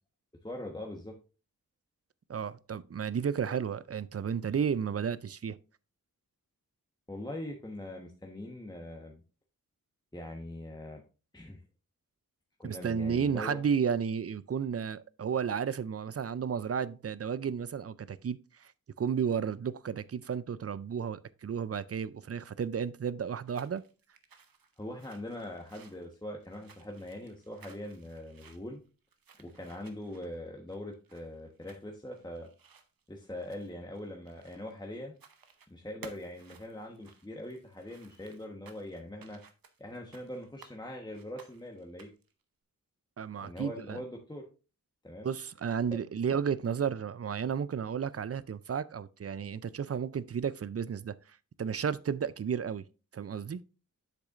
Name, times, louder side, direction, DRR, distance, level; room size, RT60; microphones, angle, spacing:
voice 1, 0.4-1.1 7.1-9.2 10.1-11.0 11.3-11.6 12.6-13.6 24.8-28.8 29.4-32.5 33.1-35.1 35.7-39.4 39.8-42.1 43.4-44.4 45.0-45.3, left 1 dB, 10° left, 1.1 m, -42 dB
voice 2, 2.3-5.6 12.6-18.7 19.0-23.8 43.2-44.0 45.2-51.2 51.6-52.8 53.1-53.6, right 7 dB, 45° right, 0.4 m, -32 dB
sound 1, 23.3-34.8 35.1-35.7 36.0-40.8 41.1-42.3, right 5 dB, 85° right, 0.8 m, -57 dB
8.1 x 6.7 x 2.5 m
wide cardioid pair, 65°, 34 cm